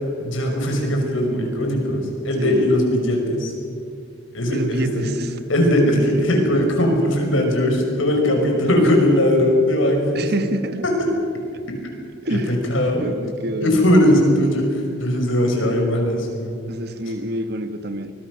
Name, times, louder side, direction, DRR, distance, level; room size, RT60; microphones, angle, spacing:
voice 1, 0.2-3.5 4.3-5.1 5.5-10.2 10.8-10.9 12.3-13.0 13.6-16.6, left 1 dB, 80° left, 2 dB, 5.6 m, -19 dB
voice 2, 2.4-2.7 4.5-5.4 5.8-6.3 10.1-10.9 12.2-12.6 13.0-13.8 16.7-18.1, right 1 dB, 50° right, 10 dB, 1.2 m, -27 dB
24.5 x 21.0 x 6.4 m, 2.3 s
head